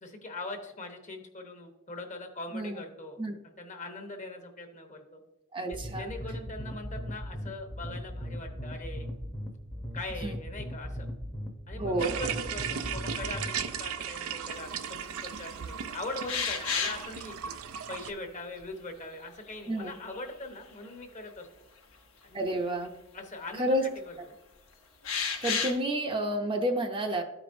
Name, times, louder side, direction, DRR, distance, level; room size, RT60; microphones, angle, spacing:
voice 1, 0.0-3.2 3.4-5.2 5.6-9.1 9.9-11.0 11.7-17.5 17.9-21.5 22.2-22.6 23.1-23.8 24.0-24.1, left 2 dB, 35° left, 4 dB, 1.0 m, -41 dB
voice 2, 5.5-6.1 10.2-10.4 11.8-12.2 19.7-20.0 22.3-22.9 23.6-23.9 25.4-27.2, right 1 dB, 25° right, 3 dB, 0.6 m, -30 dB
sound 1, 5.7-13.7, equal, 15° left, 0.8 m, -38 dB
sound 2, 12.0-18.1, right 7 dB, 90° right, 0.5 m, -36 dB
sound 3, 16.3-17.1 18.6-18.7 19.6-20.4 20.8-20.9 22.9-23.0 25.0-25.8, left 6 dB, 85° left, 1.1 m, -31 dB
13.5 x 5.0 x 2.6 m, 0.93 s
head